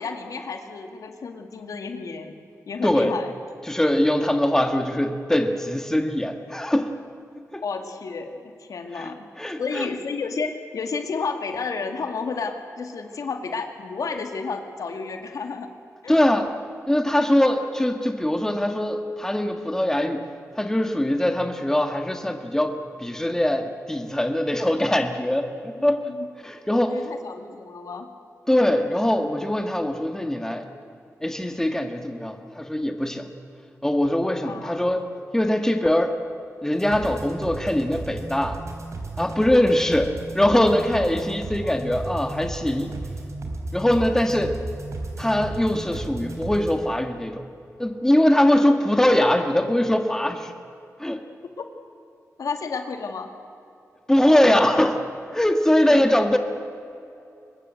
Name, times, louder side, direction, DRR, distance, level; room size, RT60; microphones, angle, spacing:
voice 1, 0.0-2.3 2.7-3.3 7.6-9.3 9.6-15.7 16.0-16.2 25.8-26.3 26.9-28.1 34.4-34.9 41.6-41.8 51.6-51.7 52.4-53.3 55.9-56.0, left 4 dB, 80° left, 6 dB, 2.3 m, -31 dB
voice 2, 2.8-3.1 3.7-6.9 7.5-7.6 9.0-9.1 9.4-9.9 16.1-16.5 16.9-20.2 20.6-26.0 26.4-27.0 28.5-30.7 31.2-33.3 33.8-35.1 35.3-36.1 36.6-38.6 39.2-43.0 43.7-44.6 45.2-47.5 47.8-50.5 51.0-51.2 54.1-55.0 55.3-56.4, left 1 dB, 10° left, 6 dB, 1.8 m, -22 dB
sound 1, 36.7-46.7, right 2 dB, 60° right, 4.1 m, -34 dB
24.0 x 21.0 x 7.9 m, 2.7 s
wide cardioid pair, 110°, 6 cm